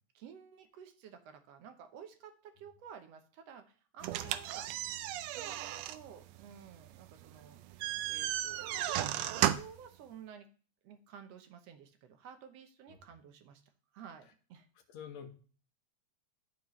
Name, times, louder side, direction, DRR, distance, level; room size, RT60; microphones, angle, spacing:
voice 1, 0.1-4.7 5.3-10.5 10.8-13.6 13.9-14.7, right 8 dB, 65° right, 7 dB, 1.8 m, -53 dB
sound 1, 4.0-9.9, right 12 dB, 85° right, 1.5 m, -35 dB
voice 2, 14.9-15.3, left 7 dB, 65° left, 3 dB, 2.3 m, -47 dB
13.0 x 4.5 x 3.1 m, 0.39 s
omnidirectional pair, 3.5 m